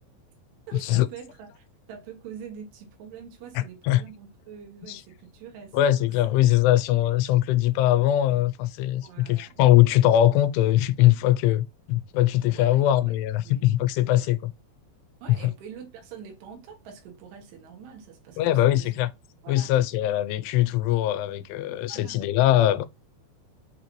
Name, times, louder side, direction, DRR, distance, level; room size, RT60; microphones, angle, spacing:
voice 1, 0.7-6.1 9.0-9.6 12.4-13.2 13.4-13.7 14.1-14.3 15.2-18.9 19.4-19.7 21.9-22.3, right 7 dB, 90° right, 3.3 m, -45 dB
voice 2, 3.6-4.0 4.9-5.0 5.7-14.5 15.3-15.5 18.4-19.1 19.5-22.9, left 13 dB, 90° left, 2.6 m, -21 dB
7.0 x 2.6 x 2.9 m
omnidirectional pair, 4.7 m